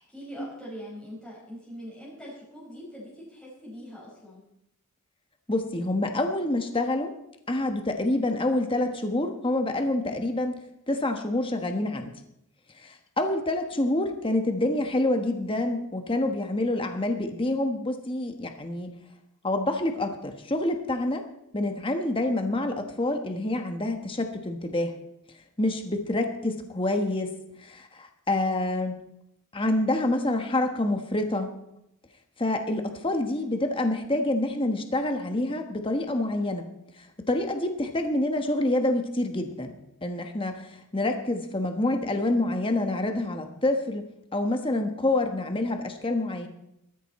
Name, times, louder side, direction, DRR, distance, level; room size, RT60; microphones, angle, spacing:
voice 1, 0.0-4.4 33.3-33.6 41.0-41.2, equal, 5° left, -7 dB, 5.1 m, -43 dB
voice 2, 5.5-7.1 7.5-10.5 10.9-12.1 12.8-18.9 19.4-21.2 21.5-24.9 25.6-27.3 27.6-29.0 29.5-31.5 32.4-36.6 37.0-39.7 40.0-44.0 44.3-46.5, left 1 dB, 25° left, 5 dB, 1.3 m, -27 dB
20.0 x 13.5 x 4.3 m, 0.80 s
head